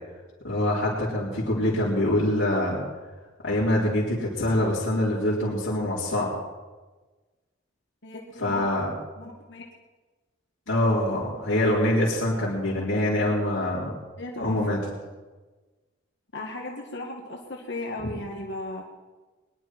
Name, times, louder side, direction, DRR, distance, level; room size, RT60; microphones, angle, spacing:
voice 1, 0.4-2.8 3.4-6.3 8.4-8.9 10.7-13.9 14.4-14.8 18.0-18.1, left 1 dB, 75° left, -9 dB, 4.3 m, -24 dB
voice 2, 8.0-8.8 9.2-9.6 14.2-14.6 16.3-18.8, left 2 dB, 60° left, 0 dB, 1.9 m, -36 dB
22.5 x 11.5 x 4.7 m, 1.2 s
head